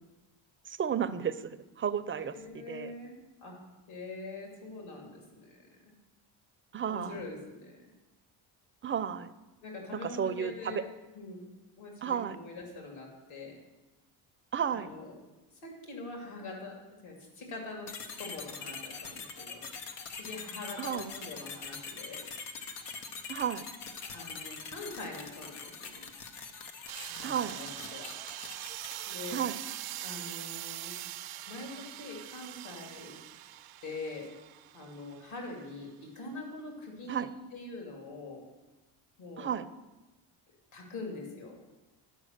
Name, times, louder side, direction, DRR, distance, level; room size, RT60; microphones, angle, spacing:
voice 1, 0.7-2.9 6.7-7.2 8.8-9.3 9.9-10.8 12.0-12.4 14.5-14.9 20.8-21.1 23.3-23.6 27.2-27.6 29.3-29.6 37.1-37.3 39.4-39.7, right 8 dB, 25° right, 11 dB, 0.5 m, -33 dB
voice 2, 2.2-3.6 3.9-5.9 6.9-7.9 9.6-11.4 11.8-13.6 14.7-15.1 15.6-16.8 17.0-17.9 18.2-19.6 20.2-22.2 24.1-26.0 27.1-28.1 29.1-29.4 30.0-31.0 31.5-33.2 33.8-34.3 34.7-38.4 39.2-39.5 40.7-41.5, left 2 dB, 70° left, 0 dB, 2.7 m, -44 dB
sound 1, 17.9-29.5, left 5 dB, 90° left, 1.1 m, -43 dB
sound 2, 26.9-35.5, right 14 dB, 75° right, 0.7 m, -43 dB
11.0 x 4.9 x 6.6 m, 1.1 s
supercardioid pair, 75°, 50 cm